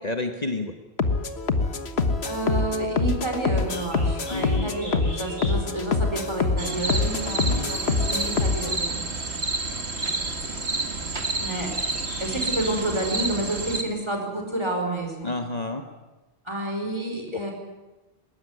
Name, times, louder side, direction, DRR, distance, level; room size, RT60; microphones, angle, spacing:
voice 1, 0.0-0.7 4.3-5.0 7.4-7.7 15.2-15.8 17.3-17.5, left 2 dB, 40° left, 5 dB, 1.5 m, -30 dB
sound 1, 1.0-8.8, left 4 dB, 80° left, 1.7 m, -25 dB
voice 2, 2.2-9.0 11.3-11.7 12.2-15.3 16.4-17.5, right 1 dB, 25° right, 2 dB, 5.2 m, -29 dB
Bird, 3.5-13.1, equal, 60° left, 7.3 m, -45 dB
sound 2, 6.6-13.8, right 3 dB, 85° right, 2.2 m, -29 dB
20.0 x 19.5 x 9.7 m, 1.1 s
omnidirectional pair, 1.1 m